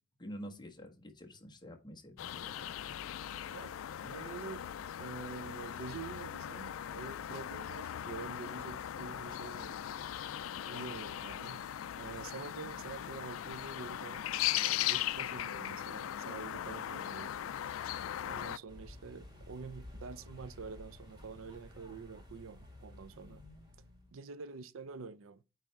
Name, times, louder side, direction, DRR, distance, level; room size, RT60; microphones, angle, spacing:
voice 1, 0.2-2.9, equal, 20° left, 1.4 m, -48 dB
sound 1, 2.2-18.6, left 11 dB, 85° left, 0.4 m, -39 dB
voice 2, 4.0-4.6 5.0-9.8 10.7-11.6 11.9-14.3 14.5-17.3 18.3-23.4 24.1-25.4, right 5 dB, 75° right, 0.5 m, -47 dB
sound 2, 18.7-24.1, left 1 dB, 20° right, 2.2 m, -52 dB
8.8 x 3.4 x 4.6 m
head